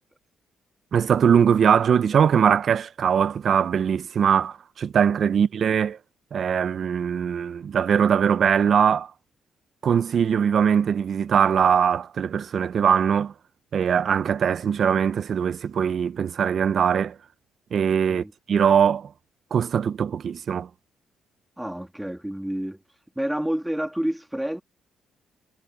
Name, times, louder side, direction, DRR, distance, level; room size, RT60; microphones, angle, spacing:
voice 1, 0.9-6.0 6.3-9.1 9.8-13.3 13.7-17.1 17.7-19.1 19.5-20.7, right 7 dB, 55° right, 0.6 m, -21 dB
voice 2, 21.6-22.8 23.2-24.6, right 1 dB, 5° right, 2.4 m, -29 dB
cardioid pair, 90°, 0 cm